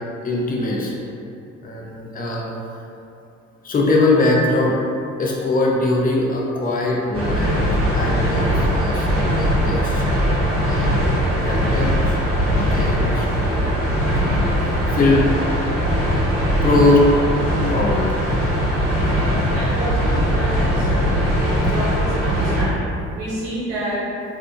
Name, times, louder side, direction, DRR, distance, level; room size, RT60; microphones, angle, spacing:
voice 1, 0.2-1.0 1.6-2.4 3.6-10.2 10.6-11.1 11.4-12.2 12.5-13.9 14.6-15.2 16.6-17.2 17.7-18.2, left 2 dB, 25° left, -3 dB, 0.6 m, -21 dB
sound 1, 7.1-22.7, equal, 35° right, 1.2 m, -20 dB
voice 2, 19.5-21.3 21.6-24.1, right 1 dB, 75° right, -8 dB, 1.1 m, -29 dB
3.4 x 2.7 x 2.4 m, 2.6 s
figure-of-eight pair, 50°, 36 cm